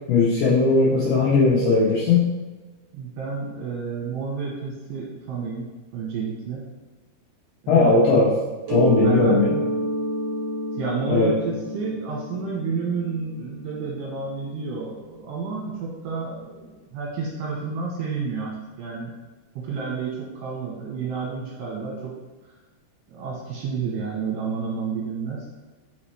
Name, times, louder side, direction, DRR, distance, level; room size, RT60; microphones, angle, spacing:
voice 1, 0.1-2.3 7.7-8.4 8.7-9.5 11.1-11.3, left 3 dB, 80° left, -6 dB, 2.3 m, -18 dB
voice 2, 2.9-5.7 5.9-6.6 7.6-8.0 9.0-9.4 10.8-19.1 19.6-22.1 23.1-25.5, right 5 dB, 75° right, -4 dB, 2.7 m, -30 dB
Mallet percussion, 8.7-14.2, right 1 dB, 50° right, 2.3 m, -28 dB
6.3 x 5.8 x 3.2 m, 1.2 s
omnidirectional pair, 5.8 m